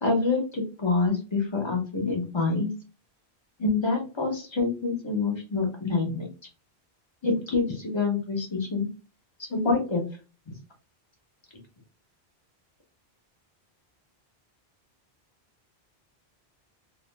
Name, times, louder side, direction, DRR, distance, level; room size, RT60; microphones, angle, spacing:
voice 1, 0.0-2.7 3.6-6.3 7.2-8.9 9.5-10.0, left 3 dB, 30° left, 1 dB, 0.8 m, -26 dB
2.5 x 2.0 x 3.1 m, 0.34 s
omnidirectional pair, 1.1 m